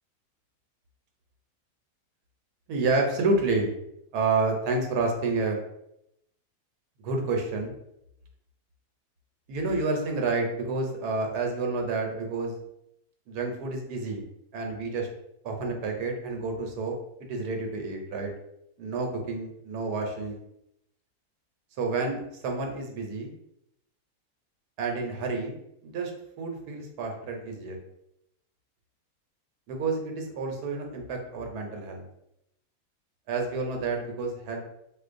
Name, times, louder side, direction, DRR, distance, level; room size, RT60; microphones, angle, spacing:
voice 1, 2.7-3.7 4.1-5.6 7.0-7.7 9.5-12.6 13.3-14.2 14.5-15.1 15.4-18.3 18.8-20.4 21.8-23.3 24.8-25.6 25.8-26.1 26.4-27.8 29.7-32.0 33.3-34.6, right 3 dB, 85° right, 2 dB, 1.2 m, -29 dB
4.4 x 2.4 x 2.5 m, 0.79 s
omnidirectional pair, 1.6 m